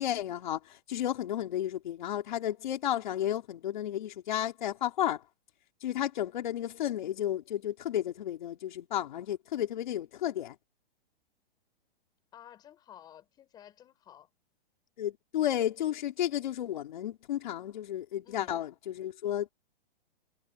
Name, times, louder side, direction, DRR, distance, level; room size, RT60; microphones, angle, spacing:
voice 1, 0.0-5.2 5.8-10.6 15.0-19.5, left 11 dB, 50° left, 4.0 m, -32 dB
voice 2, 12.3-14.3 18.2-18.6, left 10 dB, 15° left, 7.3 m, -53 dB
hypercardioid pair, 175°, 30 cm